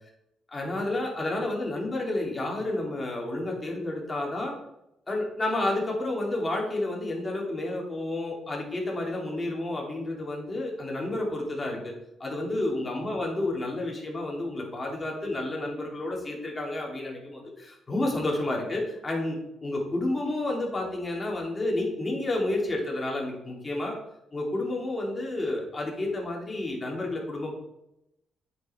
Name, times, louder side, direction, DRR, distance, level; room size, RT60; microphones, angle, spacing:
voice 1, 0.5-4.5 5.1-11.9 12.2-24.0 24.3-27.5, left 2 dB, 25° left, -1 dB, 2.8 m, -30 dB
8.6 x 5.7 x 4.6 m, 0.84 s
cardioid pair, 90°, 0 cm